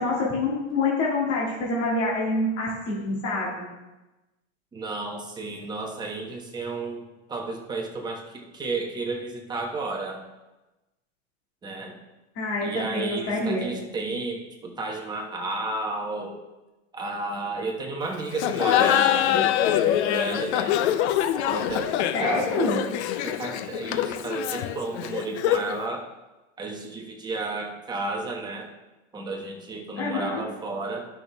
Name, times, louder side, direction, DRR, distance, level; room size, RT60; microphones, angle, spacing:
voice 1, 0.0-3.7 12.4-13.7 22.1-22.8 30.0-30.4, left 2 dB, 35° left, -5 dB, 2.1 m, -26 dB
voice 2, 4.7-10.2 11.6-12.0 12.6-16.4 16.9-20.8 21.5-22.5 22.8-22.9 23.2-26.1 26.6-28.7 29.1-31.1, right 3 dB, 10° right, 1 dB, 1.0 m, -32 dB
Laughter, 18.3-25.8, left 11 dB, 60° left, 0.6 m, -24 dB
11.5 x 5.9 x 3.4 m, 1.1 s
supercardioid pair, 150°, 38 cm